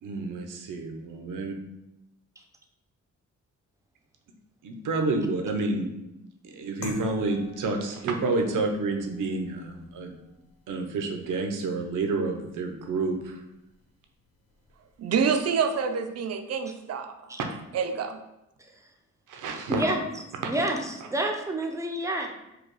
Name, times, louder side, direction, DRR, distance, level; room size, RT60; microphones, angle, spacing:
voice 1, 0.0-1.5 4.6-5.9 6.4-10.1 10.7-13.4 19.3-19.8 20.4-20.5, right 3 dB, 85° right, 4 dB, 0.8 m, -29 dB
sound 1, 6.8-15.6, left 3 dB, 45° left, 0.9 m, -49 dB
voice 2, 15.0-17.2 17.7-18.2, right 6 dB, 55° right, 7 dB, 0.5 m, -27 dB
voice 3, 18.6-18.9 19.7-20.0 20.4-22.3, right 1 dB, 10° right, 3 dB, 0.6 m, -29 dB
4.8 x 2.4 x 4.6 m, 0.89 s
cardioid pair, 120°, 31 cm